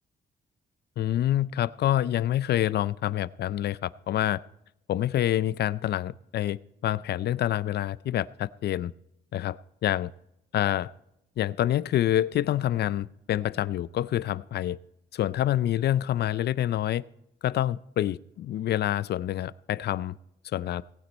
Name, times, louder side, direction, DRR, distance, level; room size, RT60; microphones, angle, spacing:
voice 1, 1.0-4.4 4.9-8.9 9.3-10.1 10.5-10.9 11.4-14.8 15.1-17.0 17.4-20.2 20.5-20.8, left 12 dB, 70° left, 20 dB, 0.4 m, -27 dB
18.5 x 9.0 x 4.3 m, 0.81 s
cardioid pair, 90°, 17 cm